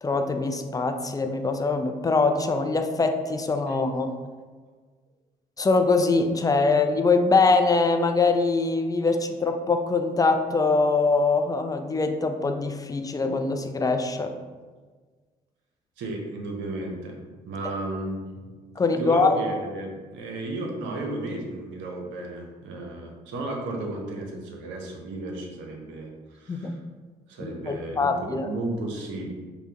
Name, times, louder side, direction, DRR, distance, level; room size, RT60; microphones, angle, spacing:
voice 1, 0.0-4.1 5.6-14.3 18.8-19.4 26.5-26.8 27.4-28.5, left 3 dB, 15° left, 6 dB, 0.4 m, -23 dB
voice 2, 16.0-17.2 17.5-18.4 19.0-26.8 27.3-29.3, right 2 dB, 65° right, 1 dB, 0.7 m, -34 dB
5.4 x 2.1 x 2.8 m, 1.4 s
figure-of-eight pair, 45°, 21 cm